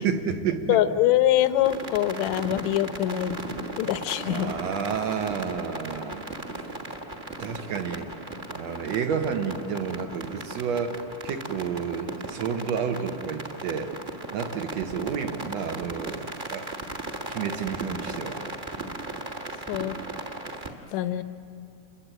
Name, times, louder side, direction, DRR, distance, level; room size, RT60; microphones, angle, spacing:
voice 1, 0.0-0.8 4.2-6.2 6.5-6.6 7.4-8.1 8.5-14.0 14.3-16.7 17.3-18.4, right 6 dB, 60° right, 7 dB, 2.4 m, -30 dB
voice 2, 0.7-3.3 3.8-4.5 19.7-20.0 20.9-21.2, left 12 dB, 70° left, 12 dB, 2.0 m, -24 dB
sound 1, 1.6-20.7, right 2 dB, 25° right, 1.2 m, -37 dB
28.0 x 22.5 x 9.3 m, 2.5 s
omnidirectional pair, 3.8 m